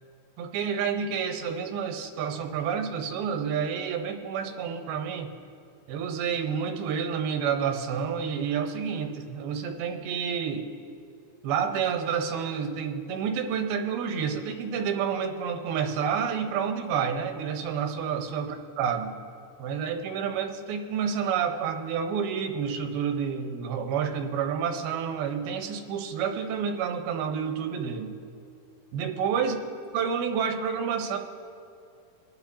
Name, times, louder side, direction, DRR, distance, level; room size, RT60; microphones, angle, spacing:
voice 1, 0.4-5.3 5.9-10.7 11.4-19.1 19.6-28.2 28.9-29.6 29.9-31.2, right 7 dB, 80° right, 4 dB, 2.9 m, -29 dB
26.0 x 10.5 x 2.8 m, 2.5 s
omnidirectional pair, 4.4 m